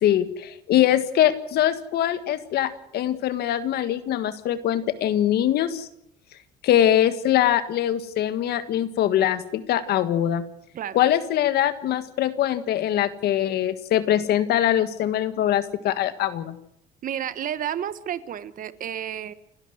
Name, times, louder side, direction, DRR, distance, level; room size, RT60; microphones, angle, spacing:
voice 1, 0.0-5.9 6.6-10.4 10.9-16.6, left 11 dB, 70° left, 12 dB, 1.7 m, -22 dB
voice 2, 17.0-19.3, right 10 dB, 55° right, 15 dB, 1.3 m, -31 dB
29.5 x 12.0 x 7.9 m, 0.76 s
cardioid pair, 110°, 17 cm